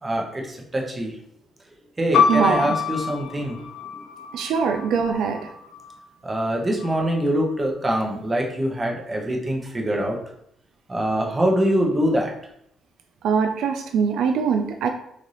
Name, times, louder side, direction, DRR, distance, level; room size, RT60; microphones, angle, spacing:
voice 1, 0.0-1.1 2.0-3.7 6.2-10.2 10.9-12.3, equal, 20° right, 0 dB, 0.8 m, -24 dB
sound 1, 2.1-6.0 6.8-7.5, left 6 dB, 75° left, 0.5 m, -26 dB
voice 2, 2.3-2.7 4.3-5.4 13.2-14.9, right 6 dB, 75° right, 4 dB, 0.3 m, -22 dB
3.2 x 2.6 x 3.9 m, 0.73 s
cardioid pair, 120°, 0 cm